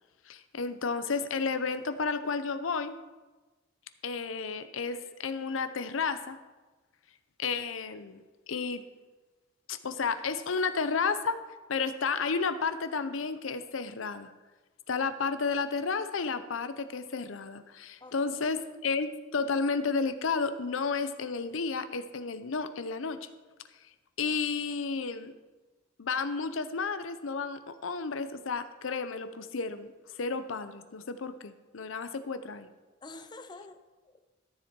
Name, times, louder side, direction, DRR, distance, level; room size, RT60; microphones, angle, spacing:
voice 1, 0.3-3.0 4.0-6.4 7.4-8.2 8.5-8.8 9.7-11.4 11.7-14.3 14.9-23.3 24.2-25.3 26.0-32.7, left 4 dB, 85° left, 11 dB, 0.6 m, -32 dB
voice 2, 18.0-18.5 33.0-34.2, left 2 dB, 25° left, 8 dB, 0.5 m, -48 dB
13.0 x 7.3 x 4.5 m, 1.2 s
head